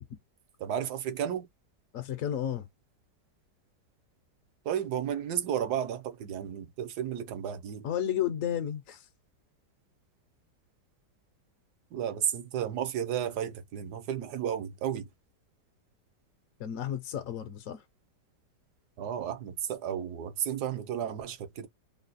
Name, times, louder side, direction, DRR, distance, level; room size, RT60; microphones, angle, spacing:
voice 1, 0.6-1.5 4.6-7.9 11.9-15.1 19.0-21.7, right 9 dB, 70° right, 1.3 m, -33 dB
voice 2, 1.9-2.6 7.8-9.1 16.6-17.8, left 10 dB, 60° left, 0.9 m, -32 dB
3.9 x 2.2 x 4.0 m
omnidirectional pair, 1.9 m